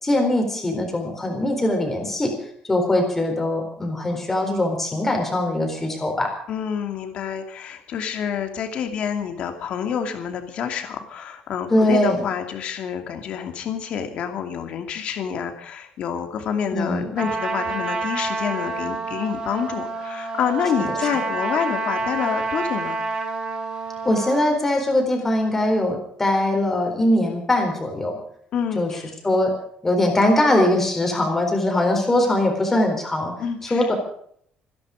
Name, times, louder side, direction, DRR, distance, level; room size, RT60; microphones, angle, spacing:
voice 1, 0.0-2.3 2.7-6.3 11.7-12.2 16.7-17.1 24.0-28.2 28.7-28.9 29.2-29.5 29.8-33.3 33.7-34.0, left 1 dB, 10° left, 2 dB, 4.2 m, -21 dB
voice 2, 6.5-23.0 28.5-29.1 33.4-33.9, left 7 dB, 50° left, 6 dB, 2.5 m, -28 dB
Trumpet, 17.2-24.5, right 3 dB, 30° right, 2.5 m, -28 dB
26.0 x 10.5 x 5.1 m, 0.63 s
cardioid pair, 175°, 3 cm